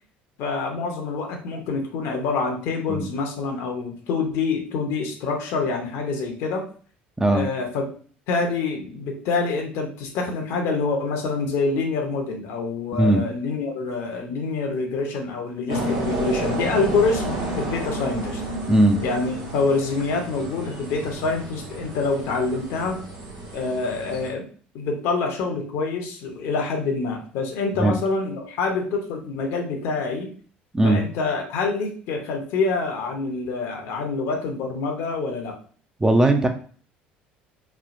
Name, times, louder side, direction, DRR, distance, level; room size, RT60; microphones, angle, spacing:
voice 1, 0.4-6.6 7.3-7.8 8.3-18.4 19.0-23.0 23.5-24.4 24.7-30.3 30.8-35.6, left 4 dB, 60° left, 3 dB, 0.7 m, -26 dB
voice 2, 7.2-7.5 12.9-13.3 18.7-19.0 27.8-28.0 30.7-31.0 36.0-36.5, right 1 dB, 10° right, 4 dB, 0.5 m, -18 dB
sound 1, 15.7-24.3, right 1 dB, 65° right, 1.2 m, -31 dB
3.2 x 2.2 x 2.5 m, 0.43 s
hypercardioid pair, 65°, 5 cm